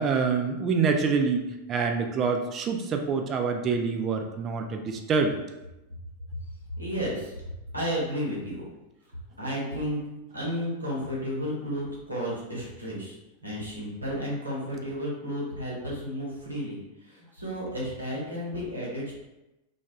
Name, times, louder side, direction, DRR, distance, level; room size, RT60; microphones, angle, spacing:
voice 1, 0.0-1.4 1.7-5.4, right 5 dB, 30° right, 4 dB, 0.3 m, -26 dB
voice 2, 6.8-7.3 7.7-8.6 9.4-10.0 10.3-19.1, equal, 85° right, -5 dB, 0.7 m, -32 dB
2.2 x 2.2 x 2.8 m, 0.97 s
figure-of-eight pair, 90°, 0 cm